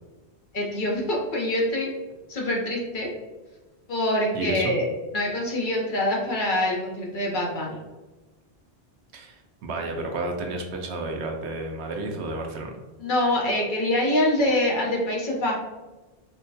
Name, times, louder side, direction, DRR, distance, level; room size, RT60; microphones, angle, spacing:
voice 1, 0.5-1.9 2.3-3.1 3.9-4.9 5.1-7.8 13.0-15.5, left 1 dB, 50° left, -2 dB, 0.8 m, -25 dB
voice 2, 4.3-4.8 9.1-12.7, right 2 dB, 80° right, 3 dB, 0.8 m, -31 dB
4.5 x 2.1 x 2.7 m, 1.2 s
omnidirectional pair, 1.1 m